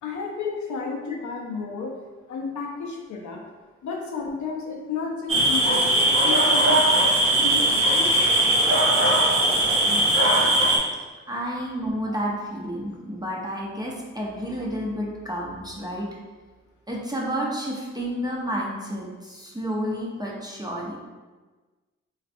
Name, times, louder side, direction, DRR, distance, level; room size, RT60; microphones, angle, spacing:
voice 1, 0.0-2.0 2.3-3.4 3.8-8.1, left 5 dB, 70° left, 1 dB, 0.6 m, -32 dB
sound 1, 5.3-10.8, right 1 dB, 45° right, 0.8 m, -19 dB
voice 2, 11.3-16.1 16.9-21.0, equal, 15° right, -4 dB, 0.7 m, -30 dB
3.2 x 2.4 x 2.5 m, 1.3 s
supercardioid pair, 40°, 30 cm